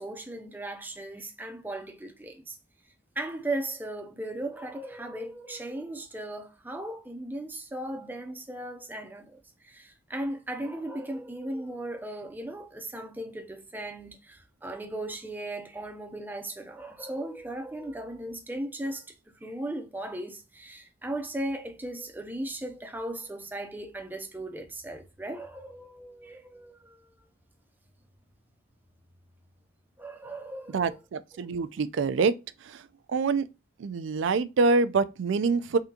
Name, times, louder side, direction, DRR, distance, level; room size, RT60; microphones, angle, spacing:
voice 1, 0.0-2.6 3.2-19.1 19.4-27.1 30.0-31.0 31.3-31.5, right 1 dB, 10° right, 0.5 m, -37 dB
voice 2, 30.7-32.3 33.1-33.5 33.8-35.8, right 4 dB, 70° right, 0.4 m, -25 dB
3.7 x 3.4 x 2.7 m
head